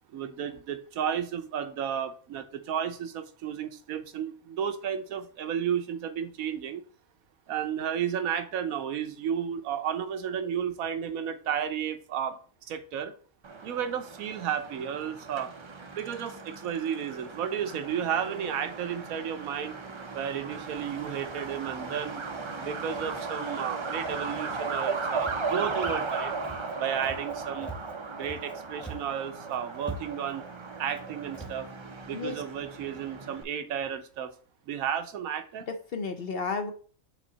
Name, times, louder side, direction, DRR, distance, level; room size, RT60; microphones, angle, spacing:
voice 1, 0.1-6.8 7.5-13.1 13.6-15.5 15.9-19.8 20.1-22.2 22.6-26.4 26.7-27.7 28.1-30.4 30.8-31.7 32.0-34.3 34.7-35.7, right 8 dB, 85° right, 1.2 m, -32 dB
Truck, 13.4-33.4, right 4 dB, 40° right, 0.4 m, -37 dB
Walk footsteps, 25.2-25.5 25.8-26.1 26.4-26.7 27.0-27.3 27.6-28.5 28.8-29.2 29.5-29.6 29.8-30.3 30.9-31.0 31.3-31.6, right 2 dB, ahead, 0.8 m, -42 dB
voice 2, 32.1-32.4 35.7-36.7, left 4 dB, 55° left, 0.7 m, -32 dB
6.3 x 3.9 x 4.0 m
omnidirectional pair, 1.4 m